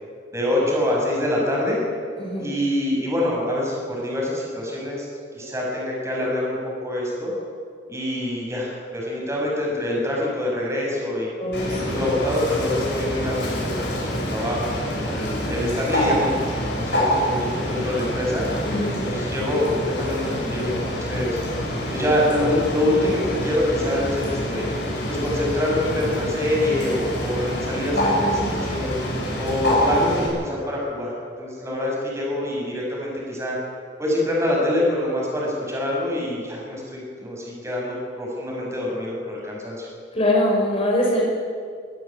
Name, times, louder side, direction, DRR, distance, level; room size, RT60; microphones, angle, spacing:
voice 1, 0.3-1.8 2.4-5.1 5.3-7.3 7.9-11.3 11.7-18.5 19.0-21.4 21.9-24.7 25.1-28.9 29.4-31.1 31.4-33.6 34.0-39.9, left 1 dB, 15° right, -3 dB, 5.8 m, -25 dB
voice 2, 11.4-12.0 18.6-19.0 27.9-28.6 40.1-41.2, left 1 dB, 30° left, -2 dB, 5.3 m, -23 dB
Bird, 11.5-30.3, equal, 65° left, 7.0 m, -26 dB
23.5 x 12.0 x 9.8 m, 2.1 s
head